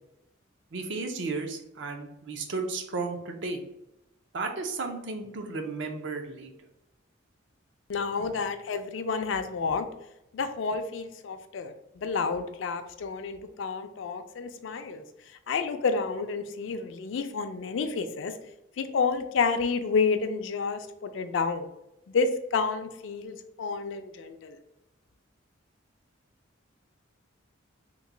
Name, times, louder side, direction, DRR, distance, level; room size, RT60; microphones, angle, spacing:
voice 1, 0.7-3.6 4.3-6.5, right 3 dB, 65° right, 4 dB, 0.5 m, -34 dB
voice 2, 7.9-9.9 10.3-18.3 18.8-21.7 22.1-24.6, left 5 dB, 70° left, 8 dB, 0.4 m, -30 dB
3.0 x 2.2 x 3.7 m, 0.86 s
head